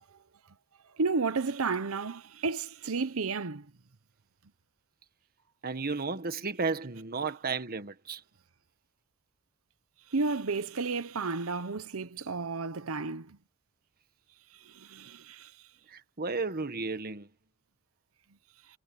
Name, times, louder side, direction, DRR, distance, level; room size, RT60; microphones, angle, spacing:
voice 1, 1.0-3.7 10.1-13.4 14.7-15.5, right 4 dB, 80° right, 0.9 m, -32 dB
voice 2, 5.6-8.2 15.9-17.3, right 4 dB, 45° right, 1.4 m, -33 dB
head